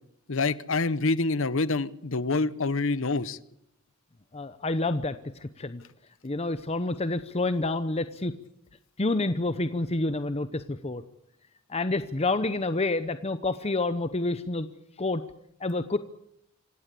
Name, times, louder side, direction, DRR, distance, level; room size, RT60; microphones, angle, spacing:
voice 1, 0.3-3.4, left 3 dB, 60° left, 17 dB, 0.9 m, -26 dB
voice 2, 4.3-5.8 6.2-8.3 9.0-11.0 11.7-14.7 15.0-15.2 15.6-16.0, left 2 dB, 30° left, 11 dB, 0.8 m, -28 dB
26.0 x 17.0 x 8.4 m, 0.75 s
head